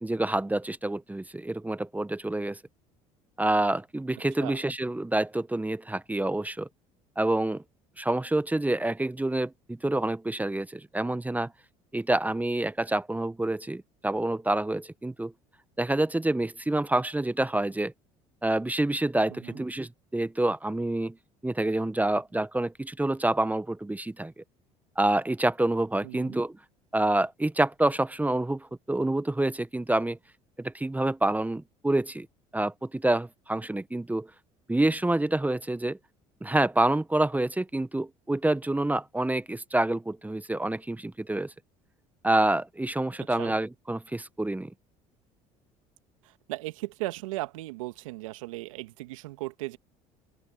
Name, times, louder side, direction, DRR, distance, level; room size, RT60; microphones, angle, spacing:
voice 1, 0.0-2.6 3.4-6.7 7.2-7.6 8.0-11.5 11.9-15.3 15.8-17.9 18.4-21.2 21.4-24.4 25.0-26.6 26.9-30.2 30.6-32.3 32.5-34.3 34.7-36.0 36.4-41.5 42.2-44.7, right 1 dB, 10° right, 1.0 m, -27 dB
voice 2, 19.3-19.6 26.0-26.4 43.2-43.5 46.2-49.8, right 19 dB, 85° right, 1.8 m, -37 dB
open air
hypercardioid pair, 70°, 17 cm